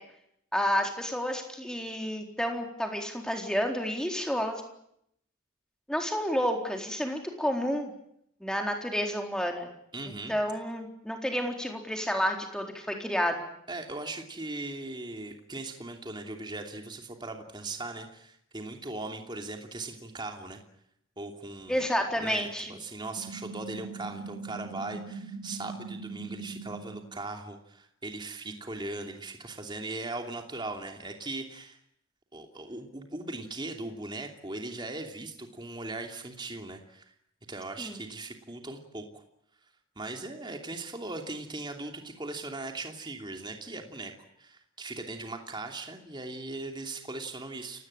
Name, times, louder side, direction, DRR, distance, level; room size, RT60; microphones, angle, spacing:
voice 1, 0.5-4.6 5.9-7.9 8.4-9.7 10.1-13.4 21.7-22.7 37.8-38.0, equal, 5° left, 3 dB, 4.1 m, -30 dB
voice 2, 9.9-10.3 13.7-20.6 21.2-21.8 22.1-31.8 32.3-37.1 37.5-39.2 40.0-44.1 44.4-47.9, right 2 dB, 20° right, 4 dB, 2.8 m, -39 dB
sound 1, 23.2-27.1, right 4 dB, 80° right, 4.2 m, -41 dB
29.5 x 18.0 x 8.9 m, 0.74 s
head